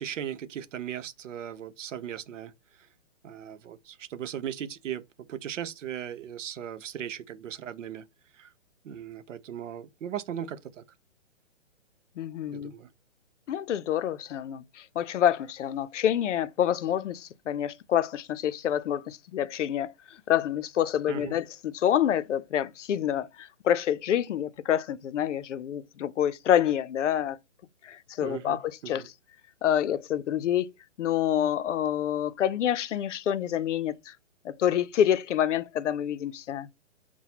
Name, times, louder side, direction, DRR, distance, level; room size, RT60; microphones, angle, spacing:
voice 1, 0.0-2.5 3.2-8.1 8.4-8.5 8.8-10.8 12.5-12.9 21.1-21.4 28.2-29.1, right 9 dB, 90° right, 0.6 m, -37 dB
voice 2, 12.2-12.7 13.5-19.9 20.3-27.4 27.8-29.1 29.6-30.7 31.0-34.1 34.4-36.7, left 10 dB, 75° left, 0.5 m, -27 dB
5.7 x 2.2 x 2.8 m
hypercardioid pair, 170°, 36 cm